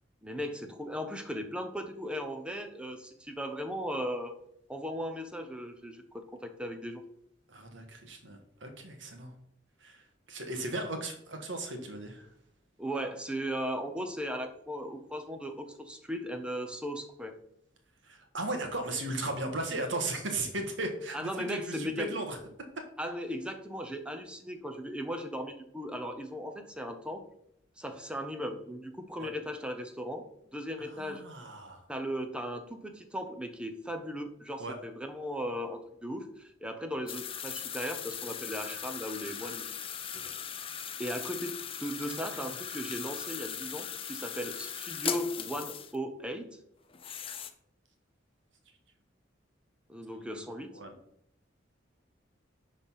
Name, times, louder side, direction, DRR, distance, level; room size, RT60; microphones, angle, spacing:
voice 1, 0.2-4.3 4.7-7.0 12.8-17.3 21.1-22.2 23.0-27.2 27.8-30.3 30.5-31.2 31.9-39.7 41.0-46.5 49.9-50.8, equal, 5° right, 6 dB, 0.8 m, -37 dB
voice 2, 7.5-9.3 9.8-12.3 18.0-22.4 29.2-29.3 30.8-31.8 34.6-34.8 39.8-39.9 40.1-40.3 42.0-42.2 50.2-50.4 50.7-50.9, right 2 dB, 80° right, 5 dB, 1.7 m, -37 dB
sound 1, 37.1-46.0 46.9-47.5, left 8 dB, 30° left, 0.6 m, -39 dB
10.5 x 4.1 x 5.6 m, 0.73 s
head